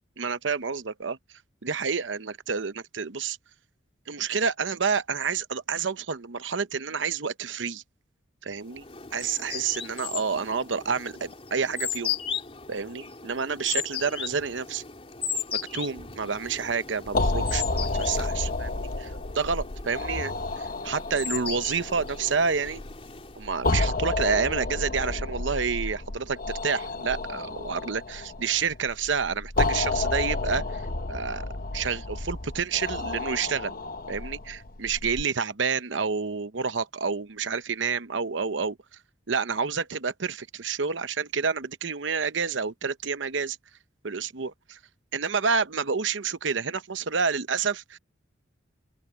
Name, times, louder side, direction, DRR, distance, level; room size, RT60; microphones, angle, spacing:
voice 1, 0.2-1.2 1.6-3.4 4.1-7.8 8.4-8.8 9.1-12.2 12.7-14.8 15.7-20.3 20.8-22.8 23.4-30.8 31.1-31.5 31.7-33.7 34.1-38.8 39.3-43.6 44.0-44.8 45.1-48.0, right 5 dB, 80° right, 0.9 m, -29 dB
sound 1, 8.7-23.6, left 7 dB, 30° left, 3.6 m, -37 dB
sound 2, 17.1-35.2, left 2 dB, 50° left, 1.0 m, -31 dB
open air
head